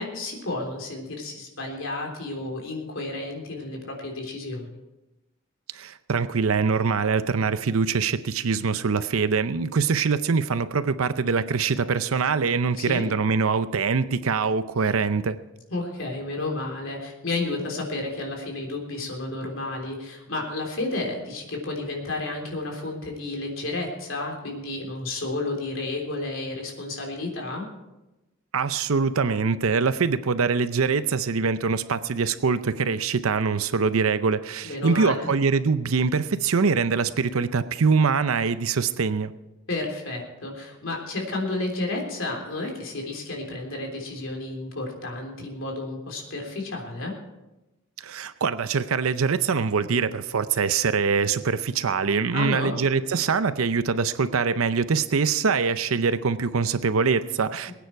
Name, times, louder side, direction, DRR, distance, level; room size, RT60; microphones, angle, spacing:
voice 1, 0.0-4.8 12.8-13.1 15.7-27.7 34.7-35.3 39.7-47.1 52.3-52.8 57.7-57.8, left 2 dB, 65° left, 1 dB, 3.5 m, -31 dB
voice 2, 5.7-15.4 28.5-39.3 48.0-57.7, right 5 dB, 90° right, 13 dB, 0.6 m, -23 dB
22.0 x 9.3 x 4.6 m, 1.0 s
head